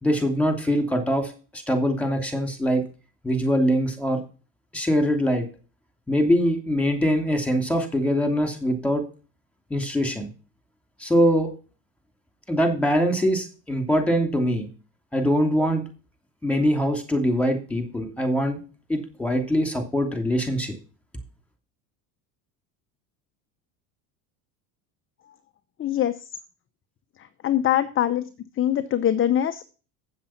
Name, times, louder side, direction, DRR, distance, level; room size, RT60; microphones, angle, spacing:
voice 1, 0.0-2.8 3.2-4.2 4.7-5.5 6.1-9.0 9.7-10.3 11.0-11.5 12.5-14.7 15.1-15.8 16.4-18.6 18.9-20.7, equal, 5° left, 5 dB, 2.9 m, -23 dB
voice 2, 25.8-26.2 27.2-28.3 28.6-29.6, left 11 dB, 25° left, 10 dB, 0.8 m, -23 dB
8.4 x 7.5 x 5.8 m, 0.35 s
hypercardioid pair, 90°, 46 cm